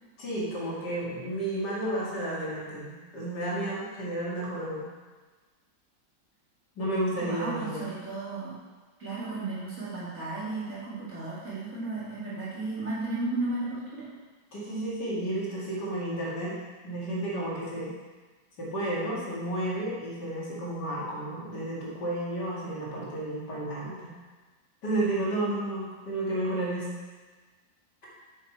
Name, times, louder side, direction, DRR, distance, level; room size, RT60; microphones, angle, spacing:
voice 1, 0.2-4.9 6.8-7.9 14.5-16.6 16.8-17.9 18.6-24.1 24.8-26.9, right 1 dB, 65° left, -6 dB, 2.5 m, -32 dB
voice 2, 7.2-8.5 9.0-14.1, right 3 dB, 45° right, -10 dB, 3.0 m, -34 dB
7.3 x 6.6 x 4.4 m, 1.3 s
omnidirectional pair, 2.0 m